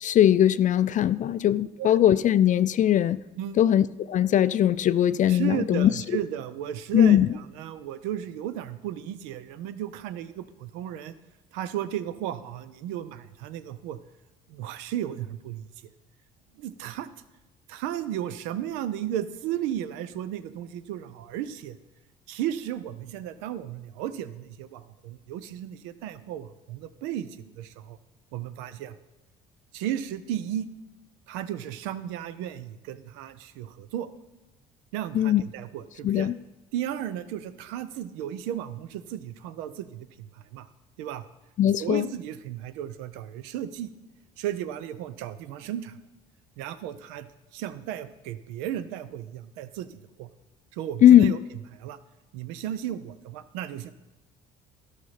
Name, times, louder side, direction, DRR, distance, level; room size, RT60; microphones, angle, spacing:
voice 1, 0.0-3.2 3.6-5.9 6.9-7.3 35.1-35.4 36.0-36.3 41.6-42.1 51.0-51.3, left 11 dB, 40° left, 15 dB, 0.4 m, -20 dB
voice 2, 5.3-11.1 11.5-14.0 14.5-15.7 16.5-17.1 17.7-21.8 22.3-28.0 28.3-29.0 29.7-30.7 31.3-34.1 34.9-36.3 36.7-40.7 41.0-41.2 41.8-43.9 44.4-46.0 46.6-47.3 47.5-50.3 50.7-51.4 51.7-52.0 52.3-53.9, right 11 dB, 80° right, 14 dB, 0.6 m, -34 dB
12.5 x 5.7 x 5.8 m, 1.0 s
hypercardioid pair, 70°, 19 cm